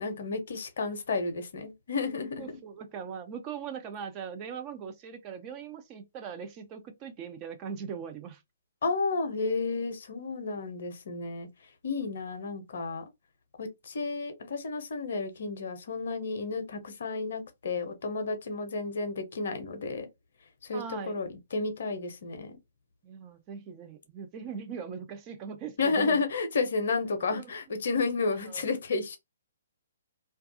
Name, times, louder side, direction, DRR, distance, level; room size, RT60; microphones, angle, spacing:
voice 1, 0.0-2.4 8.8-11.5 11.8-13.0 13.6-20.1 20.6-22.6 25.8-29.2, left 4 dB, 55° left, 0.6 m, -31 dB
voice 2, 2.4-8.4 20.7-21.1 23.0-26.2 27.3-27.5 28.3-28.7, right 7 dB, 25° right, 0.4 m, -40 dB
2.3 x 2.2 x 2.5 m
figure-of-eight pair, 125°, 0 cm